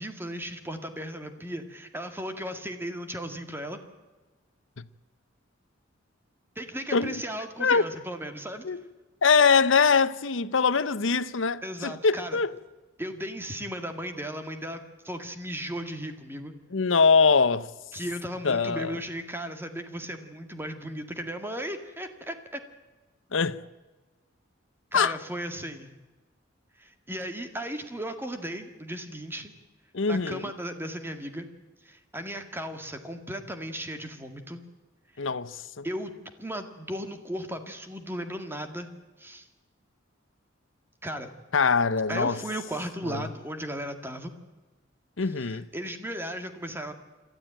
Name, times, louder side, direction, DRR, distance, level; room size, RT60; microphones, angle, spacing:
voice 1, 0.0-3.8 6.6-8.7 11.6-12.4 13.0-16.5 17.9-22.6 24.9-25.9 26.8-29.5 30.1-31.5 31.8-34.6 35.8-36.1 36.4-38.9 39.2-39.5 41.0-41.3 42.1-44.3 45.4-46.9, equal, 10° right, 2.0 m, -36 dB
voice 2, 6.9-7.2 7.6-7.8 8.6-8.8 9.2-12.5 16.7-17.7 18.4-19.0 23.3-23.6 24.9-25.2 29.9-30.5 35.2-35.9 41.5-42.4 43.1-43.3 45.2-45.7, left 5 dB, 70° left, 0.8 m, -23 dB
27.5 x 13.0 x 9.0 m
head